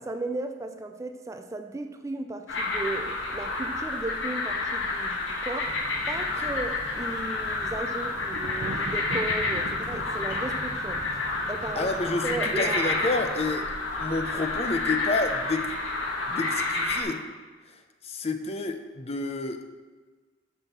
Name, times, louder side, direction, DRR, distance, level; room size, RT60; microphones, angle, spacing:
voice 1, 0.0-5.8 6.1-11.9 12.2-12.9, right 2 dB, 15° right, 7 dB, 0.3 m, -35 dB
sound 1, 2.5-17.0, left 3 dB, 85° left, 1.5 m, -29 dB
sound 2, 5.6-13.4, equal, 40° right, 1.2 m, -46 dB
Thunder, 7.7-13.1, right 2 dB, 70° right, 0.5 m, -41 dB
voice 2, 11.8-13.6 14.0-15.7 16.3-17.2 18.0-19.6, left 3 dB, 35° left, 7 dB, 0.6 m, -29 dB
6.2 x 5.8 x 6.6 m, 1.4 s
head